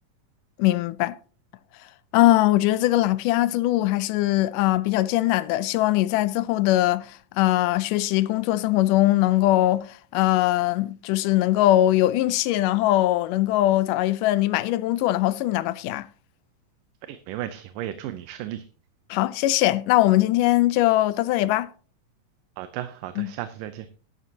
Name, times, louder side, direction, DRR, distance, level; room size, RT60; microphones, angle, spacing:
voice 1, 0.6-1.2 2.1-16.1 19.1-21.7 23.2-23.3, left 15 dB, 80° left, 2.1 m, -21 dB
voice 2, 17.1-18.7 22.6-23.9, right 12 dB, 80° right, 2.3 m, -34 dB
12.0 x 11.5 x 2.8 m
omnidirectional pair, 3.9 m